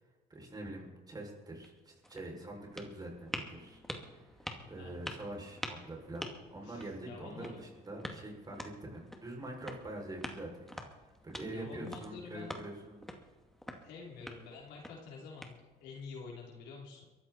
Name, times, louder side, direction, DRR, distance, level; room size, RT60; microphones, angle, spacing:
voice 1, 0.3-3.8 4.7-10.7 11.2-13.0, right 1 dB, 25° right, 0 dB, 6.8 m, -44 dB
sound 1, 1.6-16.0, equal, ahead, 2.3 m, -47 dB
voice 2, 4.6-5.0 6.6-7.6 11.5-12.7 13.8-17.0, left 5 dB, 85° left, -2 dB, 3.8 m, -48 dB
22.5 x 14.5 x 4.5 m, 1.2 s
cardioid pair, 110°, 17 cm